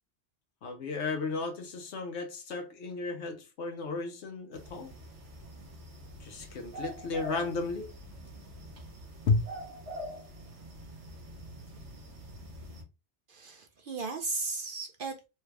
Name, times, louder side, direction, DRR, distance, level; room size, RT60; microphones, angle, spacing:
voice 1, 0.6-4.9 6.2-7.9 9.3-9.4, left 4 dB, 70° left, 1.0 m, -33 dB
sound 1, 4.5-12.8, right 1 dB, 75° right, 1.3 m, -45 dB
voice 2, 13.3-15.3, right 3 dB, 60° right, 0.6 m, -36 dB
3.3 x 2.3 x 3.2 m
omnidirectional pair, 1.2 m